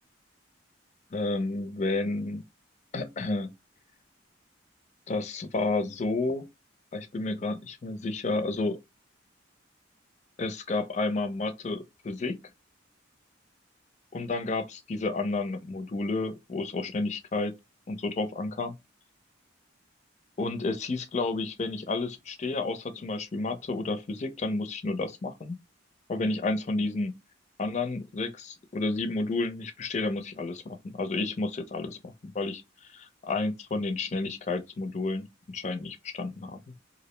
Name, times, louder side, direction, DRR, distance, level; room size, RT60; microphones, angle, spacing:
voice 1, 1.1-2.4 2.9-3.5 5.1-6.5 6.9-8.8 10.4-12.4 14.1-17.5 17.9-18.8 20.4-25.6 26.1-27.1 27.6-36.7, left 3 dB, 35° left, 0.4 m, -31 dB
2.4 x 2.0 x 3.0 m
head